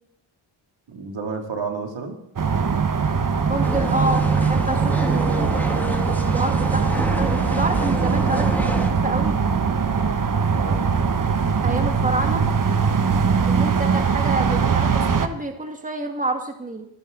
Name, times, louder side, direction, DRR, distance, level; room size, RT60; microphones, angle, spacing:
voice 1, 0.9-2.2 10.5-10.8 12.2-12.4 12.9-13.3, right 5 dB, 60° right, 3 dB, 2.8 m, -31 dB
sound 1, 2.4-15.3, right 5 dB, 40° right, 1.2 m, -21 dB
voice 2, 3.4-9.4 11.6-12.4 13.4-16.9, right 2 dB, 15° right, 4 dB, 1.9 m, -28 dB
sound 2, 3.6-8.9, equal, 5° left, 2.2 m, -29 dB
26.0 x 10.5 x 3.9 m, 0.72 s
cardioid pair, 65°, 49 cm